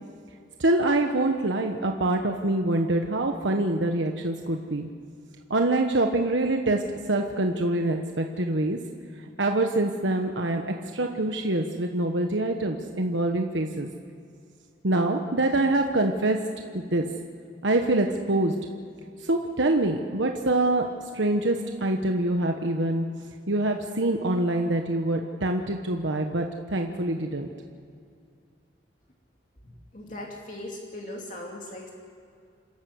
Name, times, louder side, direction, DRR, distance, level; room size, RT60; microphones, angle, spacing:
voice 1, 0.6-4.9 5.5-6.8 7.1-8.8 9.4-13.9 14.8-16.4 16.7-17.1 17.6-18.5 19.2-20.8 21.1-23.1 23.5-27.5, right 2 dB, 80° right, 3 dB, 1.2 m, -25 dB
voice 2, 29.9-31.9, left 1 dB, 45° left, -1 dB, 2.6 m, -38 dB
28.5 x 13.0 x 8.1 m, 2.4 s
head